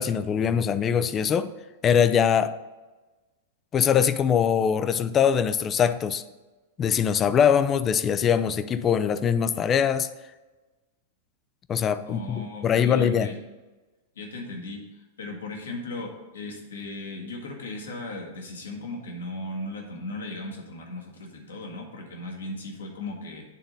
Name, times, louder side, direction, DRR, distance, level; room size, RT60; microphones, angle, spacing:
voice 1, 0.0-1.5 1.8-2.6 3.7-6.2 6.8-10.1 11.7-13.3, left 8 dB, 25° left, 0.4 m, -22 dB
voice 2, 12.0-13.3 14.1-23.4, left 2 dB, 70° left, 1.7 m, -37 dB
9.2 x 3.9 x 5.2 m
figure-of-eight pair, 100°, 0 cm